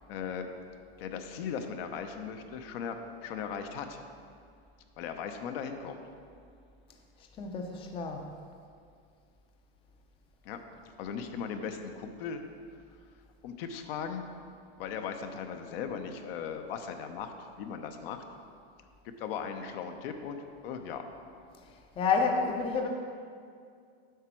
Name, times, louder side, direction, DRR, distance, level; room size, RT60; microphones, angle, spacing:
voice 1, 0.1-0.5 1.0-4.0 5.0-6.0 10.4-10.6 11.0-12.4 13.4-14.3 14.8-18.2 19.0-21.1, left 7 dB, 65° left, 6 dB, 0.8 m, -38 dB
voice 2, 7.4-8.3 22.0-22.9, left 5 dB, 15° left, 3 dB, 0.5 m, -29 dB
8.0 x 6.0 x 4.5 m, 2.2 s
supercardioid pair, 140°, 32 cm